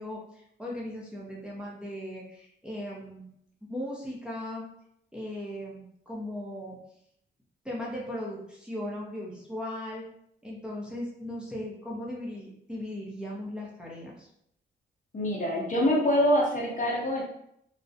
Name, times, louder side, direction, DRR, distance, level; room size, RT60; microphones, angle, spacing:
voice 1, 0.0-3.3 3.7-4.6 5.1-6.8 7.6-10.0 10.4-14.3, left 1 dB, 5° right, -5 dB, 0.7 m, -37 dB
voice 2, 15.1-17.2, equal, 40° left, -2 dB, 0.7 m, -25 dB
2.3 x 2.0 x 2.7 m, 0.72 s
cardioid pair, 80°, 20 cm